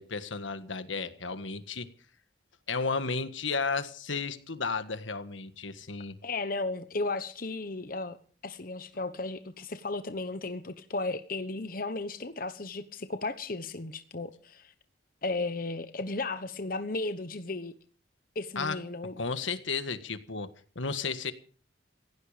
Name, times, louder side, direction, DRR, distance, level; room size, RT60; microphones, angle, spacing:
voice 1, 0.0-1.9 2.7-6.2 18.6-18.8 19.2-21.3, left 4 dB, 90° left, 1.7 m, -33 dB
voice 2, 6.2-8.2 8.4-14.7 15.2-17.7 18.3-19.2, left 3 dB, 45° left, 1.1 m, -34 dB
17.5 x 16.0 x 5.1 m
head